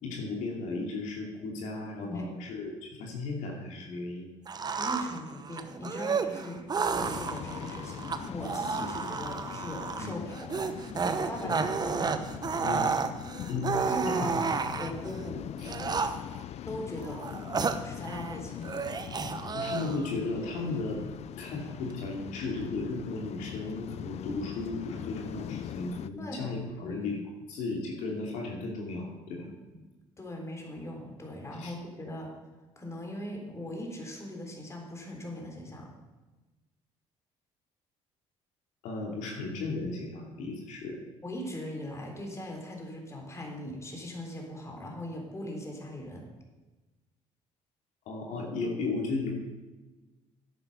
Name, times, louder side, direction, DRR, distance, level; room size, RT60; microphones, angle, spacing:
voice 1, 0.0-4.4 8.8-8.9 10.0-10.1 11.4-11.7 12.6-12.9 13.5-13.7 14.0-14.4 15.6-15.7 19.5-21.0 21.4-27.2 27.5-29.4 31.6-31.7 38.8-41.0 48.1-49.3, left 3 dB, 80° left, 0 dB, 2.7 m, -35 dB
sound 1, 4.5-15.1 15.6-16.4 17.0-18.4 18.6-20.1, right 5 dB, 30° right, 1.0 m, -32 dB
voice 2, 4.7-10.5 11.2-11.7 12.0-12.2 13.9-14.5 14.8-15.4 16.7-17.3 17.8-18.7 26.2-26.5 26.8-27.0 29.4-29.8 30.2-32.3 32.8-35.9 41.2-46.2, left 1 dB, 20° left, 1 dB, 3.7 m, -40 dB
Waves surf, 7.0-26.1, left 10 dB, 60° left, 0.5 m, -41 dB
11.0 x 8.8 x 6.9 m, 1.2 s
cardioid pair, 90°, 13 cm